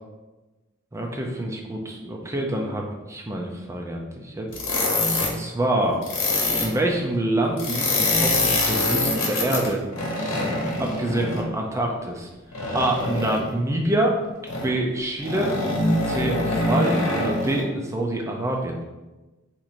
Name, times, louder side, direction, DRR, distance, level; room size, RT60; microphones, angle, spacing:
voice 1, 0.9-2.8 3.1-4.5 5.2-6.0 6.6-9.8 10.8-12.3 12.7-14.2 14.6-15.5 16.1-18.8, right 1 dB, 15° right, 0 dB, 0.4 m, -26 dB
sound 1, 4.5-5.4 6.0-6.7 7.6-11.5 12.5-13.5 14.5-14.7 15.2-17.6, left 2 dB, 80° left, 0.9 m, -24 dB
2.9 x 2.6 x 4.1 m, 1.1 s
head